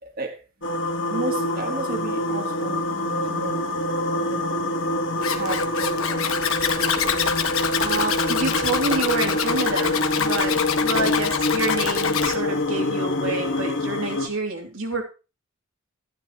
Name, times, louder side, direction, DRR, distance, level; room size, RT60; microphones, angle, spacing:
voice 1, 0.0-0.7 1.1-3.6 4.2-4.5 5.2-6.4 6.7-7.2 10.9-11.3, right 2 dB, 40° right, 1.6 m, -34 dB
sound 1, 0.6-14.3, left 1 dB, 55° left, 1.5 m, -26 dB
Zipper (clothing), 5.2-12.4, left 7 dB, 70° left, 1.2 m, -26 dB
voice 2, 7.8-15.0, right 3 dB, 65° right, 2.8 m, -28 dB
14.5 x 9.9 x 2.9 m
head